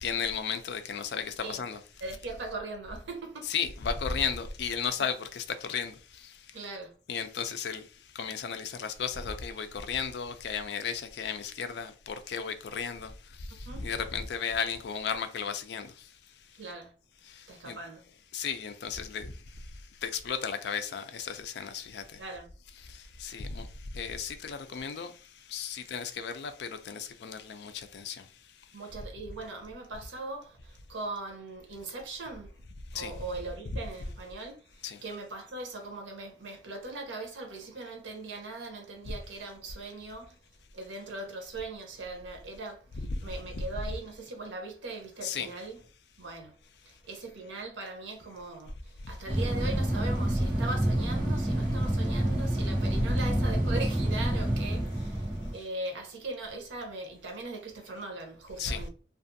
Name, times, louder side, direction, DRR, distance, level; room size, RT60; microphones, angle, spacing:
voice 1, 0.0-1.8 3.4-5.9 7.1-7.8 8.2-13.1 13.8-15.9 17.7-17.8 18.3-19.3 20.0-22.0 23.2-23.7 23.9-25.1 25.5-28.2 32.9-33.1 34.8-35.0 42.9-43.2 43.5-43.6 45.2-45.5 53.0-53.3 58.6-58.8, left 6 dB, 60° left, 0.4 m, -34 dB
voice 2, 2.0-3.5 6.5-6.9 13.7-13.9 16.5-16.9 17.5-18.0 22.2-22.5 28.7-32.6 32.9-40.3 40.7-45.8 46.2-46.6 46.8-58.9, right 2 dB, 85° right, 0.8 m, -40 dB
sound 1, 49.3-55.5, right 1 dB, 25° right, 0.9 m, -28 dB
2.5 x 2.4 x 2.6 m
head